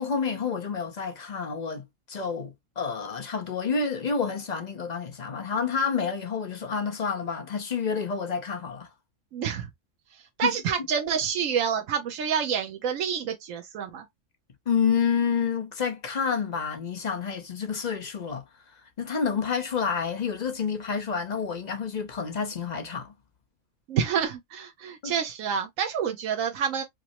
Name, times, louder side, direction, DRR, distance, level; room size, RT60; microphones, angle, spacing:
voice 1, 0.0-8.9 10.4-10.6 14.7-23.1 25.0-25.1, left 6 dB, 45° left, 0.7 m, -29 dB
voice 2, 9.3-9.7 10.4-14.0 23.9-26.8, right 7 dB, 90° right, 1.1 m, -28 dB
4.9 x 2.0 x 2.9 m
omnidirectional pair, 1.3 m